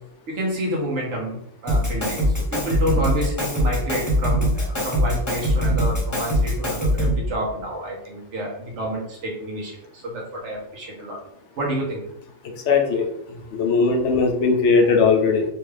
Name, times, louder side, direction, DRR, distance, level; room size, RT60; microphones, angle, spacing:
voice 1, 0.3-11.2 11.6-12.0, equal, 65° right, -3 dB, 1.2 m, -29 dB
Drum kit, 1.7-7.3, equal, 15° left, 0.7 m, -22 dB
voice 2, 12.7-13.1 13.5-15.5, left 4 dB, 70° left, 4 dB, 0.9 m, -18 dB
3.1 x 2.3 x 3.2 m, 0.77 s
omnidirectional pair, 1.3 m